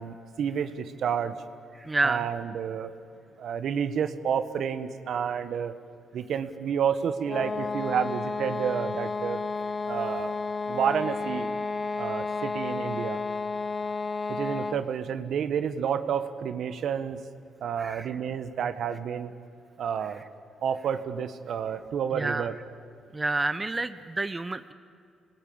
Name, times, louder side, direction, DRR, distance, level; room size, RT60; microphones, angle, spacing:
voice 1, 0.0-1.3 2.0-2.9 3.4-5.7 6.1-9.4 9.9-10.3 10.7-11.5 12.0-13.2 14.3-17.2 17.6-19.3 19.8-20.2 20.6-22.6, right 8 dB, 65° right, 11 dB, 1.4 m, -30 dB
voice 2, 1.8-2.2 17.8-18.1 22.1-22.5 23.1-24.7, right 2 dB, 20° right, 11 dB, 0.8 m, -29 dB
sound 1, 7.2-14.9, left 4 dB, 30° left, 1.0 m, -32 dB
27.0 x 20.0 x 8.8 m, 2.3 s
cardioid pair, 90°, 0 cm